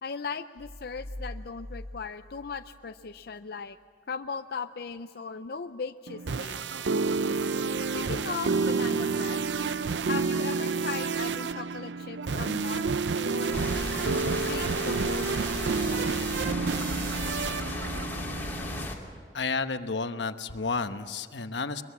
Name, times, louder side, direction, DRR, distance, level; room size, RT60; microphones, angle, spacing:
voice 1, 0.0-3.8 4.1-6.6 7.9-9.4 10.1-13.7 14.3-16.0, left 5 dB, 60° left, 8 dB, 0.5 m, -38 dB
sound 1, 0.6-3.2, left 1 dB, 15° right, 2.5 m, -43 dB
sound 2, 6.1-18.9, right 4 dB, 85° right, 0.6 m, -29 dB
sound 3, 13.5-19.0, left 1 dB, 10° left, 2.9 m, -35 dB
voice 2, 19.3-21.8, left 4 dB, 85° left, 9 dB, 1.1 m, -31 dB
23.0 x 23.0 x 7.4 m, 2.1 s
head